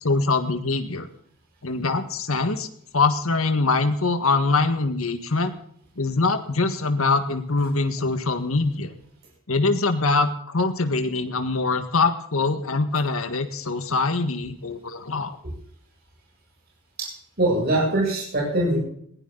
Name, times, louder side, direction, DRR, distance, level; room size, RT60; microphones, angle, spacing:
voice 1, 0.0-1.1 1.6-2.7 2.9-5.5 6.0-8.9 9.5-15.4, left 3 dB, 75° left, 8 dB, 1.7 m, -23 dB
voice 2, 17.0-18.8, right 1 dB, 45° right, -2 dB, 7.8 m, -23 dB
20.0 x 16.0 x 4.0 m, 0.65 s
head